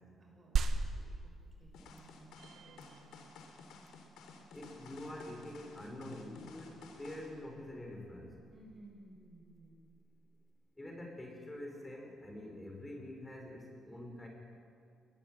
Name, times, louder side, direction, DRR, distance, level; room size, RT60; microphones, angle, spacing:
voice 1, 0.2-3.2 8.5-9.8, right 1 dB, 35° right, 1 dB, 6.7 m, -59 dB
sound 1, 0.6-10.5, right 5 dB, 65° right, 1.8 m, -42 dB
sound 2, 1.7-7.3, left 4 dB, 80° left, 3.9 m, -54 dB
sound 3, 2.4-4.2, right 8 dB, 85° right, 1.8 m, -63 dB
voice 2, 4.5-8.4 10.8-14.3, left 1 dB, 15° left, 1 dB, 6.1 m, -46 dB
22.5 x 20.5 x 9.4 m, 2.3 s
cardioid pair, 90°, 0 cm